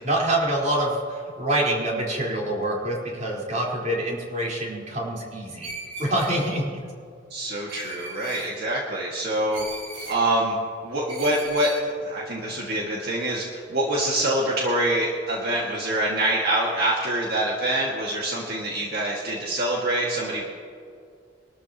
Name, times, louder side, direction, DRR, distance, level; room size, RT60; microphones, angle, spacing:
voice 1, 0.0-5.7 6.0-6.8, right 1 dB, 40° right, -4 dB, 4.3 m, -26 dB
Screech, 5.6-6.6 7.7-8.5 9.5-10.2 11.1-11.8, right 3 dB, 85° right, 3.4 m, -38 dB
voice 2, 7.3-9.6 10.1-10.6 10.8-20.4, right 1 dB, 60° right, -4 dB, 2.0 m, -25 dB
23.5 x 13.5 x 3.0 m, 2.3 s
head